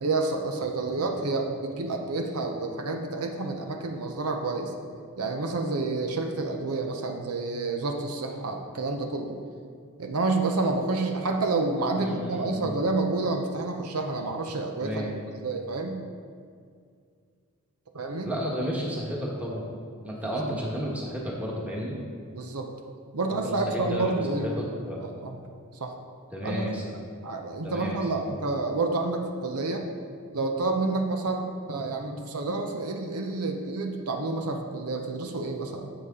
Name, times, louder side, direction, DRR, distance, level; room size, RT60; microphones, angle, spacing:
voice 1, 0.0-4.7 5.2-9.4 10.0-15.1 15.4-16.0 17.9-18.3 22.3-22.7 23.1-24.5 25.0-25.4 25.8-25.9 26.4-26.7 27.2-29.8 30.3-35.9, right 3 dB, 85° right, 4 dB, 0.7 m, -29 dB
voice 2, 11.9-12.8 14.8-15.1 18.2-19.7 20.0-22.0 23.4-25.0 26.3-26.8 27.6-28.1, equal, 5° right, -4 dB, 1.3 m, -32 dB
11.0 x 7.0 x 3.7 m, 2.2 s
head